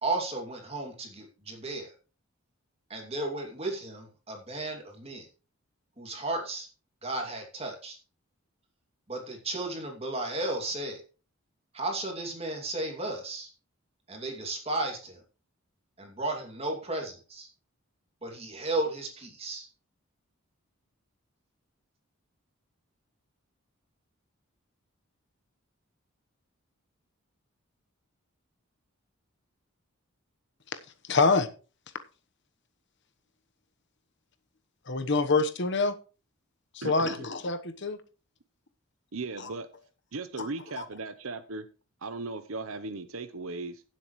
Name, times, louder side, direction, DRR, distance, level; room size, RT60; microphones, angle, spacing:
voice 1, 0.0-1.9 2.9-5.3 6.0-6.7 7.0-8.0 9.1-11.0 11.7-13.5 14.1-15.2 16.0-17.5 18.2-19.7, right 2 dB, 30° right, 2.6 m, -34 dB
voice 2, 31.0-31.5 34.9-35.9 36.7-38.0 39.4-39.5 40.4-40.5 40.8-40.9, left 3 dB, 55° left, 1.1 m, -26 dB
voice 3, 36.8-37.3 39.1-39.7 40.1-41.6 42.0-43.8, right 3 dB, 75° right, 0.9 m, -37 dB
17.0 x 7.7 x 3.1 m
head